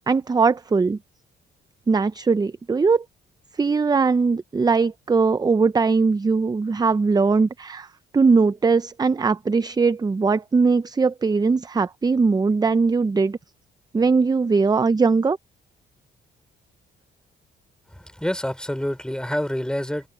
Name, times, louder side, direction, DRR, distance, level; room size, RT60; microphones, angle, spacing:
voice 1, 0.1-1.0 1.9-3.0 3.6-7.9 8.1-13.4 13.9-15.4, right 4 dB, 20° right, 0.6 m, -20 dB
voice 2, 17.9-20.1, equal, 5° left, 4.0 m, -27 dB
open air
cardioid pair, 90°, 20 cm